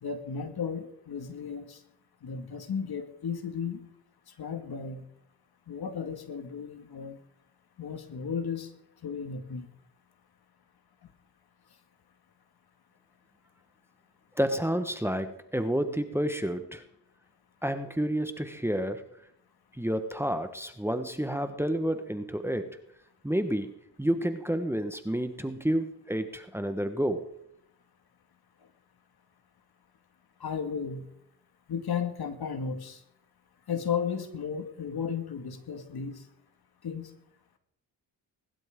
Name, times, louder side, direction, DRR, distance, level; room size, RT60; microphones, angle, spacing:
voice 1, 0.0-1.8 2.2-3.8 4.4-5.0 5.7-7.2 7.8-8.7 9.0-9.7 30.4-31.1 31.7-33.0 33.7-36.2 36.8-37.1, left 6 dB, 60° left, 7 dB, 2.2 m, -34 dB
voice 2, 14.3-16.8 17.6-19.1 19.7-22.8 23.2-27.4, equal, 5° right, 8 dB, 1.4 m, -30 dB
21.0 x 12.0 x 3.8 m, 0.75 s
supercardioid pair, 60°, 42 cm